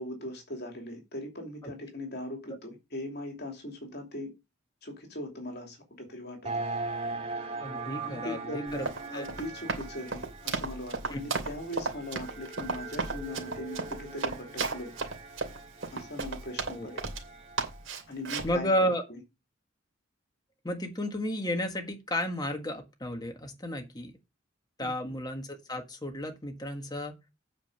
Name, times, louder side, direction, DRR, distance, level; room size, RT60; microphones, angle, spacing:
voice 1, 0.0-4.3 4.8-6.5 8.0-14.9 15.9-16.9 18.1-18.7 19.1-19.2 24.8-25.1, left 1 dB, 55° left, 2.8 m, -40 dB
sound 1, 6.4-17.9, right 3 dB, 30° right, 1.8 m, -40 dB
voice 2, 7.6-8.9 9.1-9.3 11.1-11.2 16.6-16.9 18.4-19.0 20.6-24.1 24.8-27.1, equal, 20° left, 1.6 m, -32 dB
Run, 8.7-17.3 17.6-18.6, right 4 dB, 75° right, 2.6 m, -34 dB
8.8 x 5.2 x 6.7 m
head